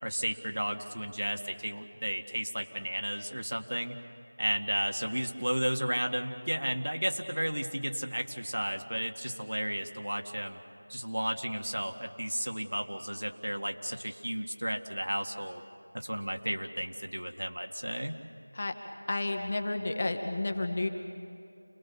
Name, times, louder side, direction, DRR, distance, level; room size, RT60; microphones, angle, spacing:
voice 1, 0.0-4.0 4.4-10.6 10.9-15.6 15.9-18.2, equal, 75° right, 4 dB, 1.9 m, -33 dB
voice 2, 19.1-20.9, left 2 dB, 25° left, 5 dB, 1.1 m, -31 dB
29.0 x 20.5 x 7.1 m, 2.5 s
figure-of-eight pair, 175°, 0 cm